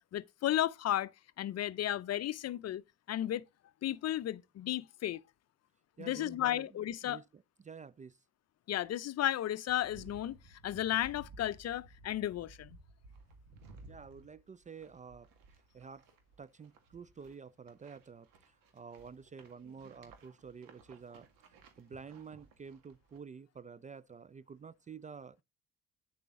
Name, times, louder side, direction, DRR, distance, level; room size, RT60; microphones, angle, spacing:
voice 1, 0.1-1.1 1.4-2.8 3.1-3.4 3.8-5.2 6.0-7.2 8.7-10.4 10.6-12.8, left 12 dB, 50° left, 0.6 m, -34 dB
voice 2, 6.0-8.2 13.9-15.3 15.7-16.0 16.4-25.4, right 6 dB, 25° right, 0.4 m, -50 dB
sound 1, 9.7-23.2, right 3 dB, 75° right, 1.9 m, -57 dB
9.4 x 6.8 x 3.7 m
hypercardioid pair, 55°, 34 cm